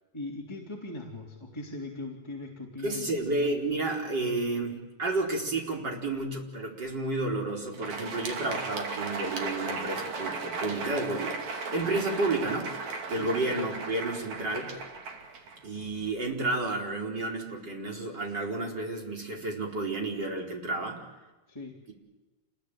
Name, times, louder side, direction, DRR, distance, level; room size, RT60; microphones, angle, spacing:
voice 1, 0.1-3.1 13.2-13.3 21.5-21.8, left 2 dB, 10° left, -2 dB, 3.3 m, -40 dB
voice 2, 2.8-14.7 15.6-21.0, right 2 dB, 30° right, 1 dB, 4.9 m, -31 dB
Crowd, 7.6-16.1, right 4 dB, 60° right, 3.9 m, -36 dB
28.0 x 21.0 x 9.3 m, 1.2 s
omnidirectional pair, 3.7 m